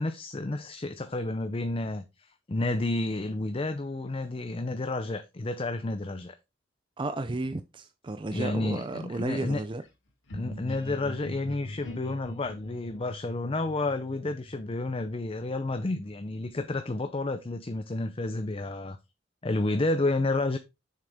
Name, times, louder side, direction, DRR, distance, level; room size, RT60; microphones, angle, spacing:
voice 1, 0.0-2.0 2.5-6.3 8.3-9.6 10.3-19.0 19.4-20.6, left 2 dB, 30° left, 0.5 m, -30 dB
voice 2, 7.0-9.8, right 2 dB, 25° right, 0.5 m, -33 dB
sound 1, 10.3-15.9, left 1 dB, 70° left, 3.4 m, -43 dB
6.7 x 6.7 x 3.5 m
head